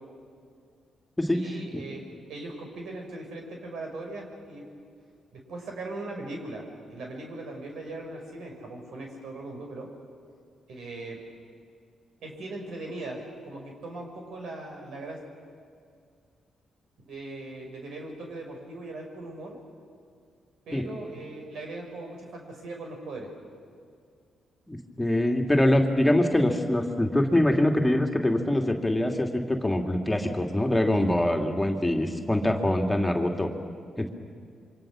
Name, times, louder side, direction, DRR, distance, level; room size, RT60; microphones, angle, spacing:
voice 1, 1.3-2.0 2.3-4.7 5.3-6.6 6.9-9.9 10.7-11.2 12.2-15.2 17.1-19.6 20.7-23.3, right 2 dB, 70° right, 1 dB, 5.7 m, -39 dB
voice 2, 24.7-33.5 34.0-34.1, left 1 dB, 15° left, 3 dB, 2.7 m, -24 dB
27.5 x 24.5 x 6.4 m, 2.2 s
hypercardioid pair, 45°, 0 cm